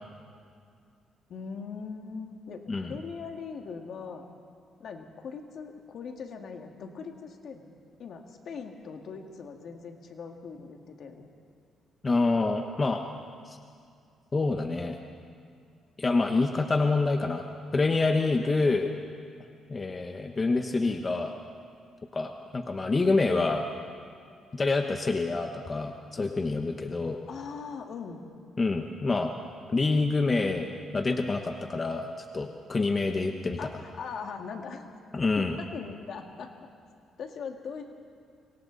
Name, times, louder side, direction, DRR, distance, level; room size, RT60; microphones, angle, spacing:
voice 1, 1.3-4.3 4.8-11.3 27.3-28.2 33.6-34.9 35.4-36.5 37.2-37.9, left 5 dB, 65° left, 3 dB, 2.2 m, -40 dB
voice 2, 12.0-13.0 13.5-13.6 14.3-15.0 16.0-17.4 17.7-18.9 19.7-21.3 22.1-23.6 24.5-27.2 28.6-29.3 29.7-33.6 35.1-35.6, left 3 dB, 30° left, 4 dB, 1.2 m, -27 dB
27.0 x 24.0 x 4.1 m, 2.3 s
cardioid pair, 90°, 0 cm